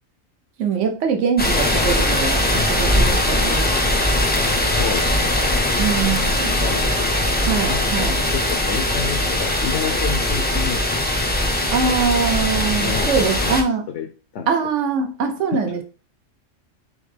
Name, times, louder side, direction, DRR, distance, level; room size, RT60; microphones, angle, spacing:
voice 1, 0.6-3.7 5.8-6.5 7.5-8.1 11.7-13.9 14.5-15.8, right 5 dB, 75° right, 6 dB, 1.1 m, -23 dB
sound 1, 1.4-13.6, left 1 dB, 15° left, 0.4 m, -20 dB
voice 2, 2.5-2.9 4.6-5.6 6.2-6.3 6.6-7.3 7.7-11.3 12.8-14.1 14.3-14.5 15.5-15.6, left 7 dB, 70° left, 4 dB, 0.8 m, -30 dB
4.2 x 3.6 x 3.3 m, 0.35 s
omnidirectional pair, 1.3 m